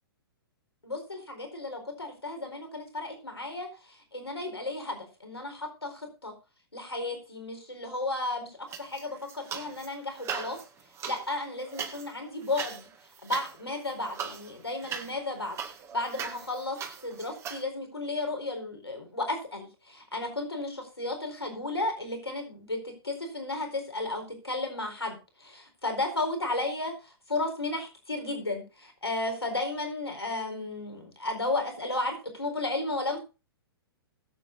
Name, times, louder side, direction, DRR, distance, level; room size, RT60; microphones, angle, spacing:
voice 1, 0.8-6.3 6.7-10.6 11.0-12.8 13.2-15.6 15.9-16.8 17.0-27.0 27.3-33.2, left 2 dB, 85° left, 4 dB, 4.5 m, -33 dB
sound 1, 8.7-9.9 10.2-17.6, right 7 dB, 20° right, 1.9 m, -39 dB
20.5 x 7.8 x 2.7 m, 0.31 s
figure-of-eight pair, 115°, 13 cm